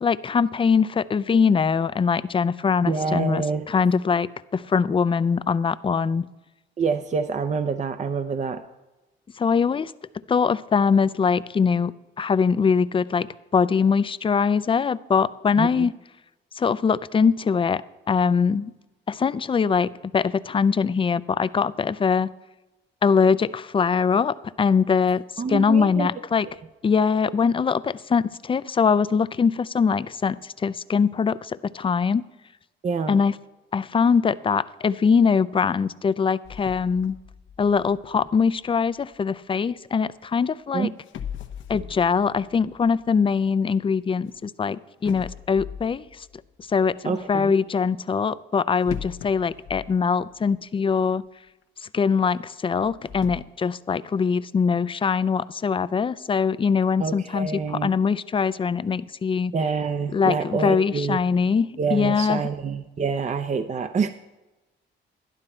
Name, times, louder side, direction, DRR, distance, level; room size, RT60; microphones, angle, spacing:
voice 1, 0.0-6.3 9.4-9.9 10.3-11.9 12.2-15.9 16.6-17.8 18.1-18.7 19.1-22.3 23.0-25.2 25.5-26.5 26.8-32.2 33.1-33.3 33.7-37.2 37.6-40.9 41.7-46.0 46.7-51.2 51.9-59.5 60.1-62.4, left 5 dB, 25° left, 16 dB, 0.4 m, -22 dB
voice 2, 2.8-3.7 6.8-8.6 15.6-15.9 25.4-26.1 26.5-26.6 32.8-33.2 40.7-40.9 47.0-47.6 57.0-57.9 59.5-61.2 61.8-64.1, right 5 dB, 35° right, 9 dB, 0.6 m, -26 dB
sound 1, 36.4-39.6 40.6-40.7 41.0-44.4 45.0-46.9 48.8-50.6 50.9-51.0 51.6-51.7 52.7-53.4, left 8 dB, 75° left, 0.9 m, -40 dB
11.5 x 11.5 x 4.3 m, 1.1 s
cardioid pair, 90°, 20 cm